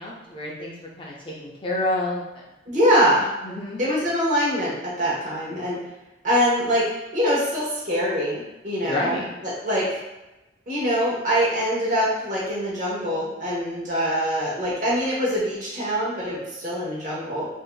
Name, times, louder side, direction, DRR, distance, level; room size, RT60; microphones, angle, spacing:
voice 1, 0.0-2.4 3.4-3.8 8.8-9.3, left 1 dB, 30° left, -4 dB, 0.4 m, -29 dB
voice 2, 2.7-3.3 3.8-5.8 6.2-9.2 9.6-10.0 10.7-17.5, equal, 45° right, -6 dB, 1.0 m, -23 dB
3.5 x 2.6 x 2.2 m, 0.99 s
head